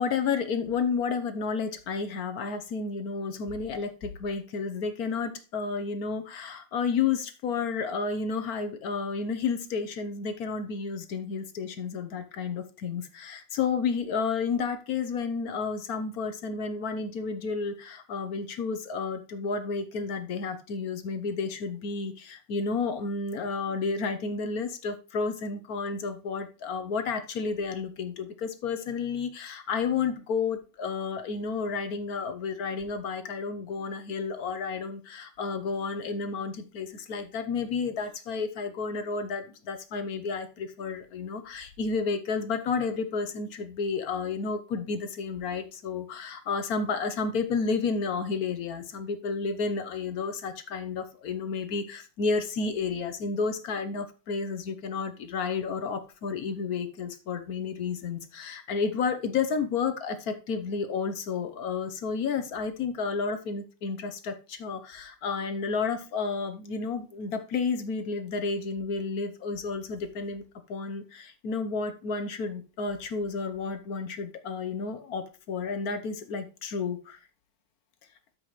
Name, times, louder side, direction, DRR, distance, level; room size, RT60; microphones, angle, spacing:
voice 1, 0.0-70.4 70.7-77.2, left 5 dB, 55° left, 9 dB, 1.2 m, -31 dB
12.5 x 5.2 x 3.2 m, 0.33 s
omnidirectional pair, 2.2 m